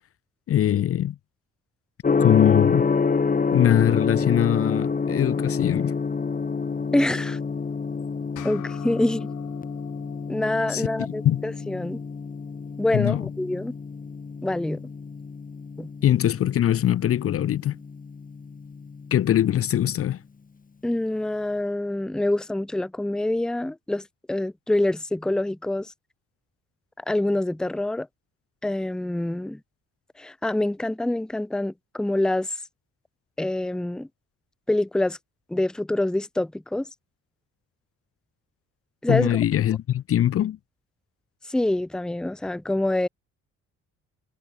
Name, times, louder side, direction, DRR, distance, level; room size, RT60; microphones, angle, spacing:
voice 1, 0.5-1.2 2.2-2.9 3.5-6.0 10.7-11.4 12.9-13.3 16.0-17.8 19.1-20.2 39.1-40.6, left 11 dB, 50° left, 0.6 m, -22 dB
Gong, 2.0-19.9, left 5 dB, 25° left, 1.7 m, -28 dB
voice 2, 6.9-7.4 8.4-9.3 10.3-12.0 12.8-13.7 14.4-14.8 15.8-15.9 20.8-25.9 27.1-28.1 28.6-29.6 30.2-32.5 33.4-34.1 34.7-35.2 35.5-36.9 39.0-39.4 41.5-43.1, left 1 dB, ahead, 0.6 m, -26 dB
sound 1, 8.4-13.1, left 14 dB, 85° left, 7.8 m, -48 dB
cardioid pair, 90°, 30 cm